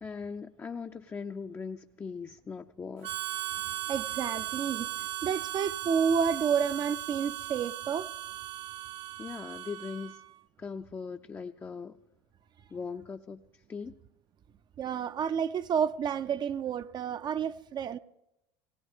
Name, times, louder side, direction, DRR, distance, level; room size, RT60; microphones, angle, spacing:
voice 1, 0.0-3.1 9.2-10.2 10.6-12.0 12.7-13.4 13.7-14.0, left 5 dB, 20° left, 0.5 m, -40 dB
Harmonica, 3.0-10.3, right 16 dB, 60° right, 0.8 m, -37 dB
voice 2, 3.9-8.1 14.8-18.0, right 7 dB, 35° right, 0.4 m, -30 dB
18.5 x 18.0 x 3.6 m
hypercardioid pair, 90°, 13 cm